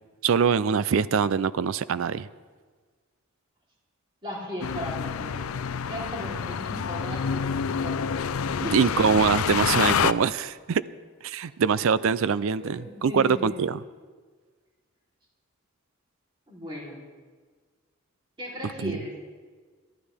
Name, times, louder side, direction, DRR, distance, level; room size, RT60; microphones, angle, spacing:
voice 1, 0.2-2.3 8.7-10.8 11.2-13.8 18.6-19.0, right 6 dB, 70° right, 16 dB, 0.4 m, -24 dB
voice 2, 4.2-5.5 5.9-8.1 8.6-8.9 12.6-13.6 16.5-16.9 18.4-19.2, left 1 dB, 25° right, -4 dB, 3.7 m, -36 dB
sound 1, 4.6-10.1, left 7 dB, 85° left, 0.5 m, -27 dB
22.5 x 13.0 x 3.5 m, 1.5 s
head